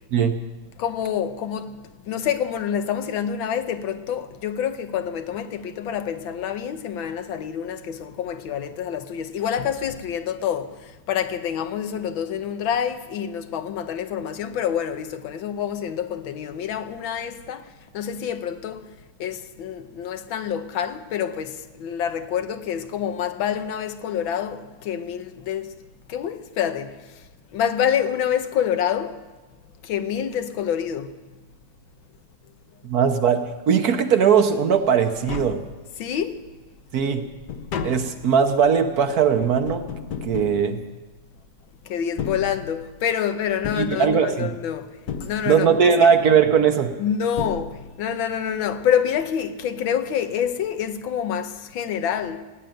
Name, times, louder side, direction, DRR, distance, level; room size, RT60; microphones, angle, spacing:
voice 1, 0.8-18.9 19.2-25.7 26.1-26.9 27.5-29.2 29.8-31.1 36.0-36.4 41.8-46.1 47.0-52.4, left 8 dB, 85° left, 1.7 m, -27 dB
voice 2, 32.8-35.6 36.9-37.3 37.8-39.9 40.2-40.8 43.8-44.5 45.5-46.9, right 7 dB, 60° right, 1.2 m, -19 dB
Tap, 35.1-36.2 36.7-41.4 42.0-43.1 43.6-44.6 45.1-45.9 46.9-47.0 47.4-48.2 48.5-48.6, left 6 dB, 65° left, 1.4 m, -34 dB
17.0 x 9.3 x 9.1 m
omnidirectional pair, 2.1 m